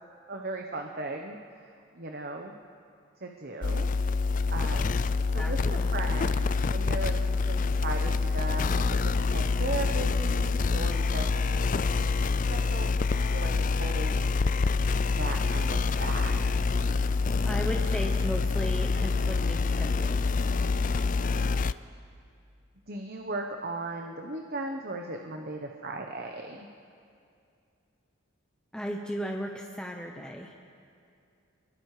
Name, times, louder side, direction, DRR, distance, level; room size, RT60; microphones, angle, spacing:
voice 1, 0.3-1.7 1.9-2.6 3.2-3.9 4.5-4.9 5.3-11.3 11.5-12.2 12.5-14.3 15.1-16.4 21.3-21.4 22.9-26.7, right 2 dB, 50° right, 3 dB, 1.1 m, -37 dB
sound 1, 3.6-21.7, left 4 dB, 40° left, 0.4 m, -26 dB
voice 2, 5.4-5.9 17.4-20.3 28.7-30.5, equal, 5° left, 1 dB, 1.0 m, -36 dB
28.5 x 22.0 x 5.0 m, 2.5 s
head